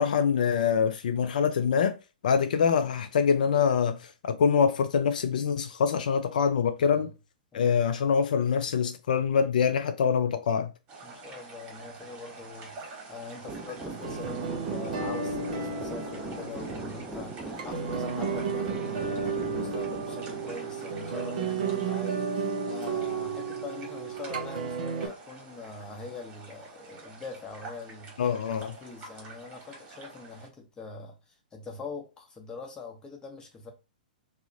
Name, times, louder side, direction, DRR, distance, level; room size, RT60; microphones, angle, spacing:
voice 1, 0.0-2.0 2.2-7.1 7.5-10.7 28.2-28.7, left 6 dB, 65° left, 0.3 m, -25 dB
sound 1, 10.9-30.5, right 3 dB, 30° right, 1.1 m, -47 dB
voice 2, 11.0-28.2 28.5-33.7, left 4 dB, 15° left, 0.8 m, -43 dB
sound 2, 13.4-25.1, right 5 dB, 60° right, 0.7 m, -33 dB
sound 3, 13.5-21.8, right 2 dB, 5° right, 0.4 m, -40 dB
2.8 x 2.0 x 2.6 m
figure-of-eight pair, 110°, 5 cm